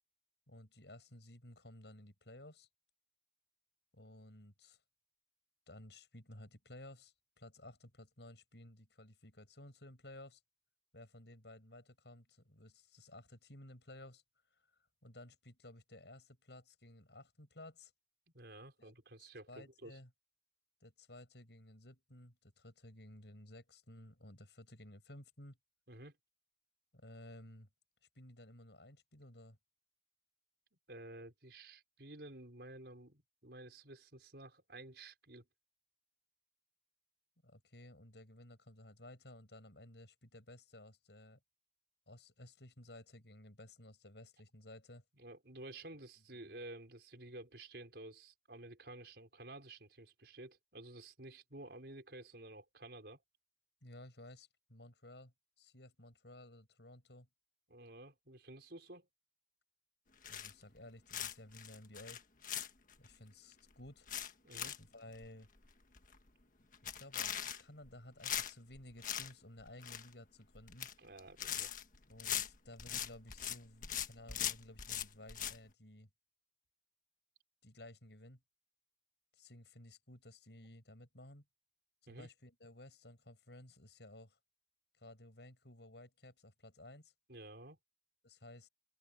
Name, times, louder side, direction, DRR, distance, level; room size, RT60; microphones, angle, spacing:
voice 1, 0.5-2.7 3.9-4.8 5.7-10.4 10.9-14.2 14.5-14.6 15.0-17.9 18.8-18.9 19.2-20.1 20.8-25.6 26.9-27.7 28.1-29.6 37.4-41.4 42.1-45.0 46.3-46.5 53.8-57.3 60.3-62.2 63.0-64.1 64.8-65.5 66.8-70.9 72.1-76.1 77.6-78.4 79.3-81.4 82.0-84.4 85.0-87.1 88.2-88.7, left 1 dB, 75° left, 6.4 m, -56 dB
voice 2, 18.3-20.0 25.9-26.2 30.9-35.5 45.2-53.2 57.7-59.1 64.4-64.8 71.0-71.7 82.1-82.3 87.3-87.8, right 2 dB, 65° right, 5.3 m, -52 dB
sound 1, 60.2-60.8 61.1-63.1 63.5-63.6 63.9-64.8 65.1-65.3 65.6-65.7 66.0-66.3 66.7-67.9 68.2-69.3 69.6-70.1 70.5-70.9 71.2-73.6 73.8-75.6, left 10 dB, 50° left, 1.6 m, -40 dB
open air
head